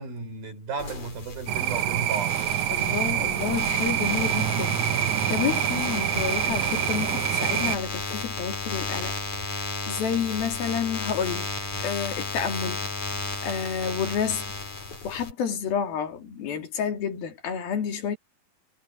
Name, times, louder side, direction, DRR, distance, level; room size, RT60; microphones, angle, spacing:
voice 1, 0.0-2.4, right 4 dB, 75° right, 6.8 m, -34 dB
sound 1, 0.8-15.3, left 3 dB, 50° left, 8.6 m, -33 dB
sound 2, 1.5-7.8, right 14 dB, 90° right, 1.7 m, -26 dB
voice 2, 2.7-9.1 9.4-11.5 11.8-12.8 13.4-14.5 15.0-18.2, left 7 dB, 75° left, 4.6 m, -30 dB
omnidirectional pair, 4.3 m